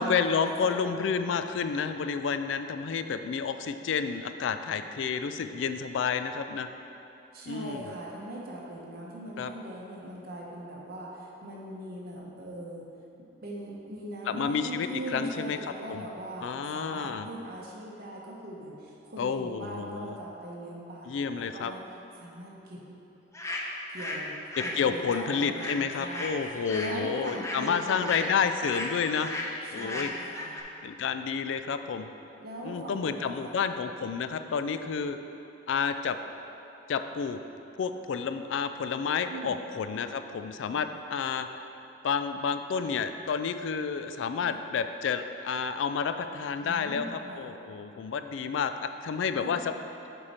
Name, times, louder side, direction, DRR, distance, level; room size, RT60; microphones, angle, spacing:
voice 1, 0.0-6.7 7.5-7.9 9.4-9.5 14.3-15.6 15.9-16.0 16.4-17.3 19.2-20.2 21.1-21.7 24.6-29.3 29.7-30.1 30.8-32.1 32.6-35.2 35.7-36.2 36.9-37.4 37.8-41.5 42.0-49.7, left 6 dB, 70° left, 9 dB, 0.3 m, -30 dB
voice 2, 7.3-12.9 13.4-21.8 22.2-22.8 23.9-24.3 24.6-28.3 29.6-30.6 32.4-33.5 39.3-39.6 40.7-40.9 44.4-44.6 46.6-47.5 49.4-49.7, right 1 dB, 55° right, -3 dB, 1.2 m, -40 dB
sound 1, 23.3-24.2 24.5-30.6, left 2 dB, 15° left, 0.6 m, -36 dB
7.4 x 4.8 x 4.3 m, 2.9 s
head